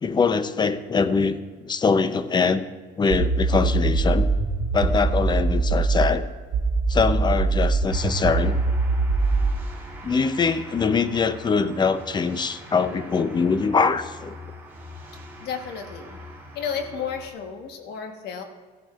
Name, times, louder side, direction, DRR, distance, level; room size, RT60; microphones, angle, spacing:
voice 1, 0.0-2.6 3.0-4.3 4.7-6.3 6.9-8.6 10.0-14.4, left 5 dB, 25° left, 12 dB, 0.6 m, -23 dB
sound 1, 3.1-6.1 6.5-9.5, right 3 dB, 70° right, 1.2 m, -22 dB
sound 2, 7.8-17.3, left 1 dB, 10° right, 3.0 m, -42 dB
voice 2, 15.4-16.2 16.5-18.4, left 7 dB, 75° left, 5 dB, 1.2 m, -32 dB
15.5 x 11.0 x 2.4 m, 1.4 s
cardioid pair, 110°, 17 cm